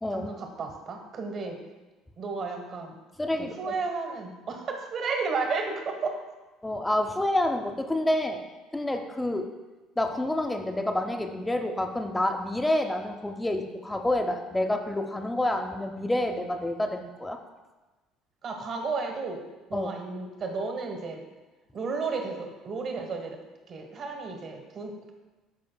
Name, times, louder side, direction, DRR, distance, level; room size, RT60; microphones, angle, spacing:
voice 1, 0.1-1.6 2.2-3.0 3.4-6.2 18.4-19.4 19.7-21.2 21.7-23.4 23.7-25.1, right 4 dB, 45° right, 3 dB, 1.3 m, -33 dB
voice 2, 3.2-3.7 6.6-8.4 8.7-9.5 10.0-17.4 19.7-19.9, left 1 dB, 10° left, 5 dB, 0.7 m, -28 dB
11.5 x 5.1 x 2.2 m, 1.2 s
figure-of-eight pair, 60°, 0 cm